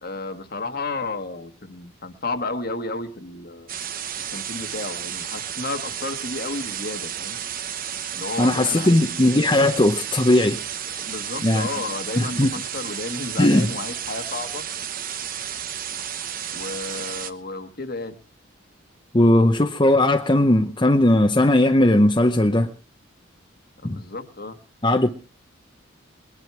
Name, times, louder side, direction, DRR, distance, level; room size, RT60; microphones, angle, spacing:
voice 1, 0.0-3.7 4.3-7.4 8.1-9.0 11.0-14.6 16.5-18.2 23.8-24.6, left 3 dB, 45° left, 1.4 m, -32 dB
sound 1, 3.7-17.3, right 9 dB, 40° right, 0.9 m, -32 dB
voice 2, 8.4-10.6 11.4-11.7 12.2-12.5 13.4-13.7 19.1-22.7 23.8-24.0 24.8-25.1, left 1 dB, 20° left, 0.7 m, -18 dB
21.5 x 11.0 x 4.6 m
head